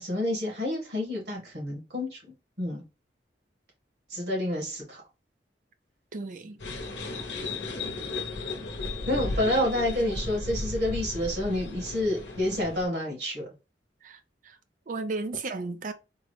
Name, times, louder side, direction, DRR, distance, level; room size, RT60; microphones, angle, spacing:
voice 1, 0.0-2.8 4.1-5.0 9.1-13.5, left 1 dB, 65° right, 1.8 m, -29 dB
voice 2, 6.1-6.6 14.0-14.2 14.4-14.6 14.9-15.9, right 3 dB, 45° right, 0.4 m, -34 dB
sound 1, 6.6-12.9, left 2 dB, 80° left, 0.8 m, -35 dB
3.7 x 2.1 x 3.2 m
head